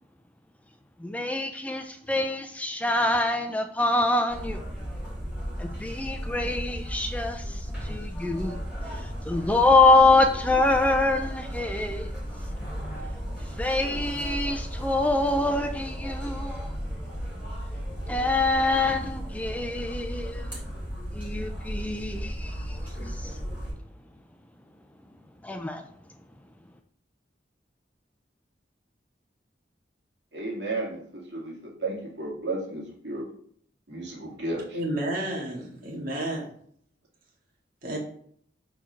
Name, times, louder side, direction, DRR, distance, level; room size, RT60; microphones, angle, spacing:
voice 1, 1.0-4.6 5.6-8.6 9.2-12.1 13.6-16.7 18.1-20.5 21.1-22.8 23.2-23.3 25.4-25.8, left 2 dB, 10° left, 0.4 m, -25 dB
sound 1, 4.3-23.7, equal, 5° right, 2.9 m, -35 dB
voice 2, 30.3-33.3 33.9-34.8, right 2 dB, 75° right, 2.3 m, -33 dB
voice 3, 34.7-36.4 37.8-38.0, right 1 dB, 55° right, 2.0 m, -31 dB
4.7 x 4.5 x 5.8 m
head